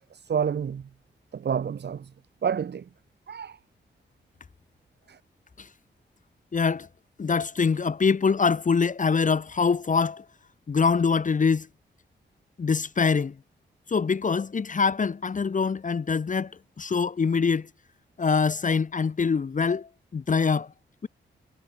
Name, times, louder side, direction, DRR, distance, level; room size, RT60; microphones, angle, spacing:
voice 1, 0.1-0.8 1.3-2.1 2.4-2.8 3.3-3.6 5.1-5.2, right 7 dB, 60° right, 1.0 m, -29 dB
voice 2, 6.5-6.9 7.2-10.2 10.7-11.7 12.6-13.4 13.9-17.7 18.2-20.7 21.0-21.1, left 5 dB, 40° left, 0.9 m, -24 dB
cardioid pair, 65°, 19 cm